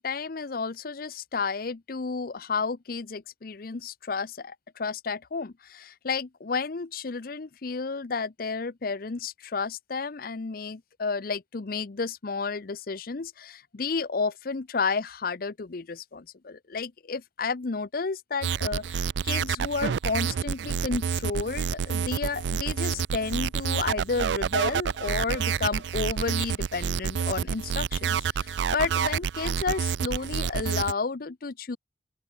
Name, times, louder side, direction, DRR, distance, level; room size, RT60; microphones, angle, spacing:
voice 1, 0.0-31.8, left 4 dB, 55° left, 0.7 m, -32 dB
sound 1, 18.4-30.9, right 7 dB, 75° right, 0.4 m, -28 dB
open air
head